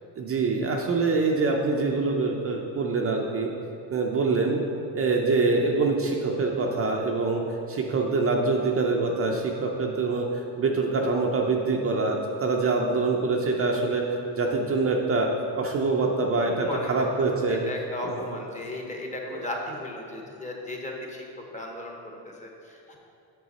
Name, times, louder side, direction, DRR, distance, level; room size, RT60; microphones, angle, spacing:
voice 1, 0.2-3.5 3.9-4.6 4.9-7.4 7.7-15.3 15.6-17.6 18.0-18.4, right 3 dB, 30° right, 0 dB, 0.6 m, -25 dB
voice 2, 16.5-21.2 21.5-22.0 22.2-23.0, left 1 dB, 15° left, 0 dB, 0.9 m, -36 dB
7.9 x 6.1 x 4.1 m, 2.7 s
cardioid pair, 135°, 44 cm